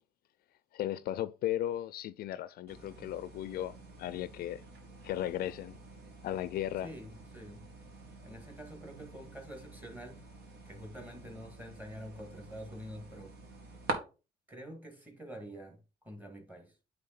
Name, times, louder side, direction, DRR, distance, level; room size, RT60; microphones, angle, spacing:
voice 1, 0.7-4.6 5.0-5.8 6.2-6.9, left 12 dB, 65° left, 0.4 m, -36 dB
sound 1, 2.7-13.9, right 3 dB, 75° right, 1.9 m, -47 dB
voice 2, 6.8-7.6 8.2-10.2 10.7-13.3 14.5-16.7, equal, 10° right, 2.2 m, -47 dB
8.9 x 3.5 x 4.3 m
cardioid pair, 110°, 17 cm